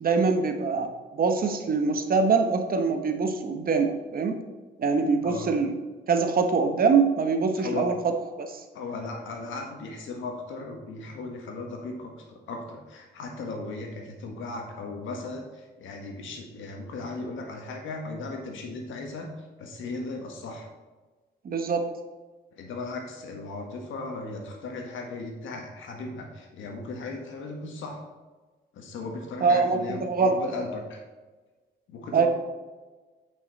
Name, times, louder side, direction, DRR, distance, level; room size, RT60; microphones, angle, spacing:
voice 1, 0.0-4.3 4.8-5.7 6.1-8.0 8.4-8.6 21.4-21.9 29.4-30.4 32.1-32.3, right 4 dB, 45° right, 6 dB, 1.1 m, -24 dB
voice 2, 7.6-7.9 8.7-19.3 19.6-20.7 22.5-28.0 28.7-31.0 31.9-32.3, left 3 dB, 80° left, 2 dB, 1.6 m, -37 dB
9.2 x 5.6 x 4.1 m, 1.3 s
cardioid pair, 90°, 20 cm